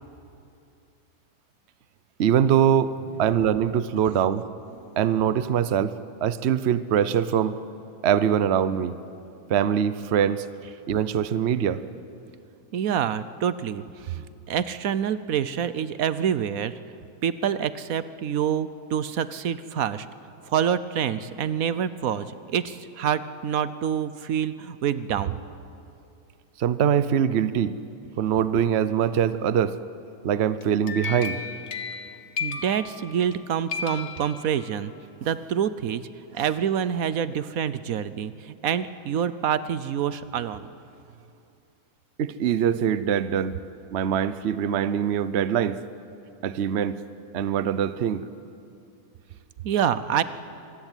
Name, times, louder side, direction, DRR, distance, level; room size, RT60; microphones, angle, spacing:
voice 1, 2.2-4.4 5.0-7.5 8.0-9.0 9.5-10.5 10.9-11.8 26.6-27.7 28.2-29.8 30.2-31.4 42.2-43.6 43.9-45.8 46.4-47.0 47.3-48.2, right 9 dB, 55° right, 14 dB, 0.9 m, -23 dB
voice 2, 12.7-16.7 17.2-20.1 20.5-25.4 32.4-34.9 35.2-36.0 36.3-40.7 49.6-50.2, right 8 dB, 75° right, 14 dB, 1.2 m, -27 dB
sound 1, 30.6-33.4 33.7-35.0, left 5 dB, 50° left, 1.4 m, -34 dB
25.5 x 21.5 x 9.1 m, 2.6 s
omnidirectional pair, 1.5 m